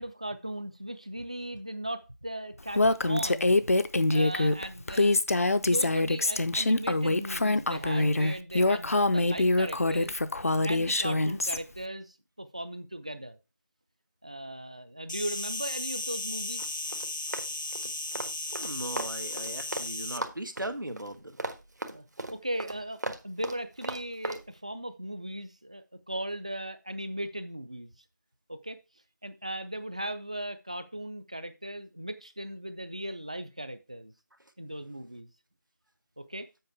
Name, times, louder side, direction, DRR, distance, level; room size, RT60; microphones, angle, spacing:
voice 1, 0.0-3.5 4.1-5.4 5.6-10.1 10.6-13.4 14.2-16.7 21.9-27.9 28.5-28.8 29.2-34.1 34.6-35.3 36.2-36.5, right 1 dB, 20° right, 12 dB, 0.4 m, -38 dB
Female speech woman speaking, 2.7-11.6, left 2 dB, 50° left, 0.5 m, -25 dB
Insect, 15.1-20.2, left 2 dB, 80° left, 0.9 m, -35 dB
Run, 16.6-19.9 20.2-24.4, right 2 dB, 65° right, 1.3 m, -37 dB
voice 2, 18.5-21.4, right 1 dB, 90° right, 8 dB, 1.6 m, -38 dB
7.9 x 5.4 x 4.6 m, 0.27 s
figure-of-eight pair, 170°, 10 cm